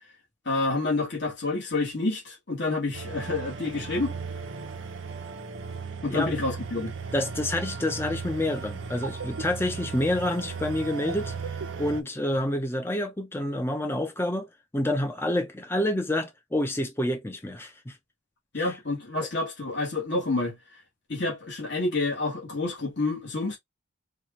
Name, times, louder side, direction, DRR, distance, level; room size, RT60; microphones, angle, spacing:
voice 1, 0.4-4.1 6.0-6.9 18.5-20.6 21.1-23.6, left 2 dB, 55° left, 1.6 m, -28 dB
sound 1, 2.9-12.0, right 5 dB, 70° right, 0.7 m, -36 dB
voice 2, 7.1-11.3 11.8-14.5 14.7-17.9 18.6-18.7, left 1 dB, 10° left, 0.5 m, -28 dB
4.6 x 2.3 x 2.9 m
head